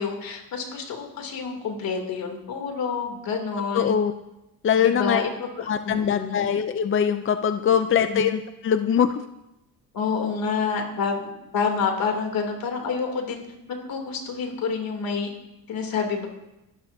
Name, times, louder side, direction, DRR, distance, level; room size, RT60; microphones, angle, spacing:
voice 1, 0.0-4.0 4.8-5.3 5.8-6.3 7.6-7.7 8.0-8.3 9.9-13.4 13.7-15.3 15.7-16.3, left 5 dB, 70° left, 2 dB, 3.0 m, -28 dB
voice 2, 3.7-4.1 4.6-5.2 5.7-9.2, left 8 dB, 35° left, 9 dB, 0.5 m, -22 dB
24.0 x 12.5 x 2.8 m, 0.93 s
cardioid pair, 110°, 36 cm